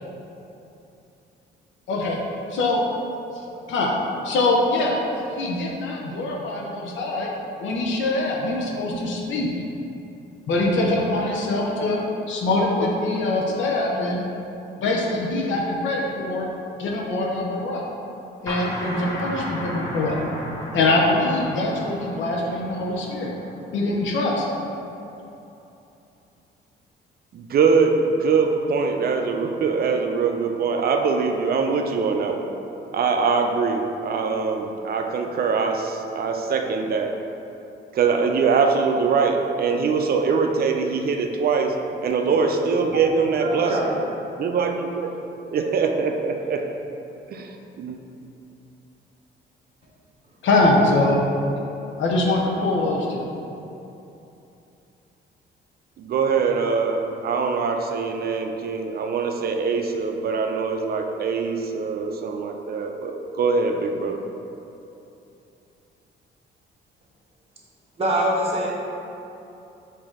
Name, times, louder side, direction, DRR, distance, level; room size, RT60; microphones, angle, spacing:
voice 1, 1.9-2.2 2.5-2.8 3.7-3.9 4.2-7.3 7.6-9.5 10.5-12.0 12.3-14.3 14.8-16.5 16.8-17.9 18.4-20.2 20.7-23.3 23.7-24.4 50.4-51.2 52.0-53.3, left 2 dB, 75° left, -2 dB, 0.6 m, -23 dB
sound 1, 18.5-23.9, equal, 15° left, 0.8 m, -34 dB
voice 2, 27.3-32.5 32.9-37.1 37.9-41.7 42.0-43.9 44.4-45.1 45.5-46.6 47.3-48.0 56.0-64.2, right 5 dB, 50° right, 3 dB, 0.4 m, -23 dB
voice 3, 43.4-43.8 68.0-68.7, right 1 dB, 30° right, -4 dB, 1.0 m, -24 dB
5.0 x 2.7 x 3.6 m, 2.9 s
cardioid pair, 90°, 20 cm